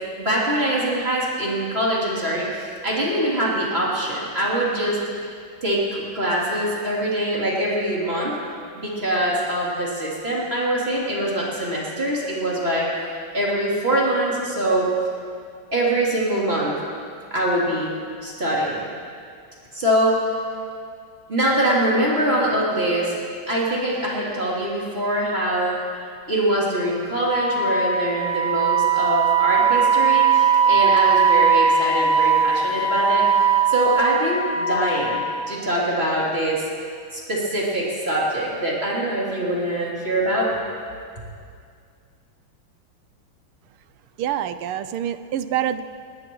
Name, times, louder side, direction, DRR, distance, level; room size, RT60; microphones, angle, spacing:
voice 1, 0.2-5.0 5.6-8.3 8.7-12.9 13.3-14.9 15.7-16.7 17.3-17.9 18.2-18.9 19.7-20.2 21.3-23.2 23.5-25.8 26.3-33.2 33.7-35.2 35.5-36.6 37.1-40.5, right 1 dB, 25° right, -6 dB, 3.4 m, -23 dB
Wind instrument woodwind instrument, 27.2-35.5, right 6 dB, 10° right, 2.0 m, -19 dB
voice 2, 44.2-45.8, right 10 dB, 90° right, 12 dB, 1.5 m, -26 dB
21.0 x 18.5 x 3.1 m, 2.2 s
omnidirectional pair, 2.4 m